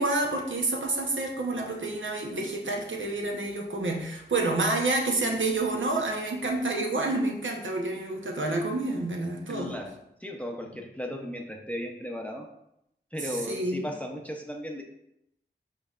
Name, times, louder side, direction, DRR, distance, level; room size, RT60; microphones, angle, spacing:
voice 1, 0.0-9.7 13.5-13.8, right 2 dB, 75° right, 1 dB, 0.8 m, -28 dB
voice 2, 9.5-12.5 13.1-14.8, equal, 5° left, 1 dB, 0.6 m, -36 dB
5.4 x 4.0 x 2.4 m, 0.80 s
wide cardioid pair, 40°, 20 cm